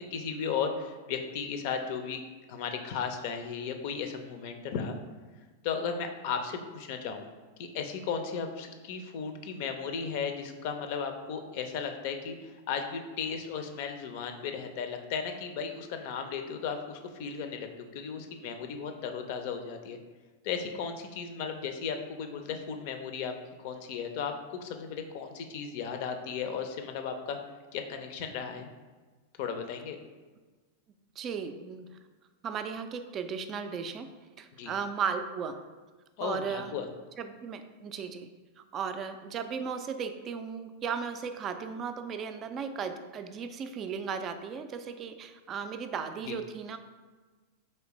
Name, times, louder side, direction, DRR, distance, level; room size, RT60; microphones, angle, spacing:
voice 1, 0.1-2.2 2.5-5.0 5.6-7.2 7.6-17.7 17.9-20.0 20.4-23.3 23.6-27.4 27.7-28.7 29.4-30.0 34.5-34.7 36.2-36.9 46.2-46.4, left 6 dB, 55° left, 6 dB, 0.5 m, -35 dB
voice 2, 31.2-31.9 32.4-34.1 34.4-35.5 36.2-36.7 37.2-38.3 38.6-46.8, right 6 dB, 35° right, 8 dB, 0.4 m, -36 dB
4.3 x 3.2 x 3.0 m, 1.3 s
figure-of-eight pair, 95°, 0 cm